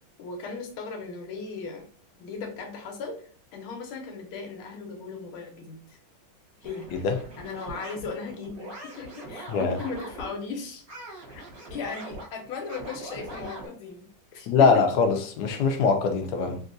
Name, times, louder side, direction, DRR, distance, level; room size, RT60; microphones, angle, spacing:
voice 1, 0.2-1.9 2.2-6.0 6.6-6.9 7.4-10.8 11.3-11.4 11.7-14.7, left 4 dB, 90° left, 1.7 m, -37 dB
sound 1, 6.6-10.4 10.9-13.7, right 1 dB, 50° right, 1.4 m, -42 dB
voice 2, 14.5-16.6, left 5 dB, 70° left, 1.0 m, -22 dB
3.6 x 2.7 x 2.6 m
omnidirectional pair, 2.2 m